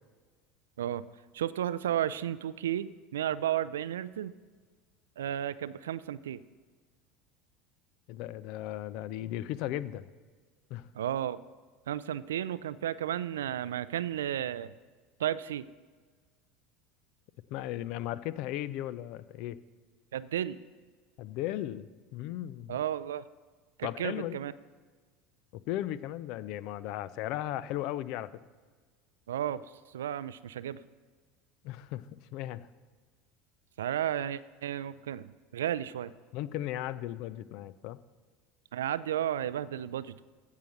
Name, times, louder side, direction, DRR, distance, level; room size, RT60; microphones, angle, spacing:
voice 1, 1.3-4.3 5.2-6.4 10.9-11.4 11.9-14.7 15.2-15.7 20.1-20.6 22.7-23.2 23.8-24.5 29.3-29.6 29.9-30.8 33.8-36.1 38.7-40.3, right 11 dB, 75° right, 17 dB, 0.4 m, -33 dB
voice 2, 8.1-10.1 10.7-10.9 17.5-19.6 21.2-22.8 23.8-24.4 25.5-28.3 31.6-32.0 32.3-32.7 36.3-38.0, left 13 dB, 55° left, 17 dB, 0.4 m, -36 dB
15.5 x 5.7 x 6.5 m, 1.5 s
figure-of-eight pair, 70°, 0 cm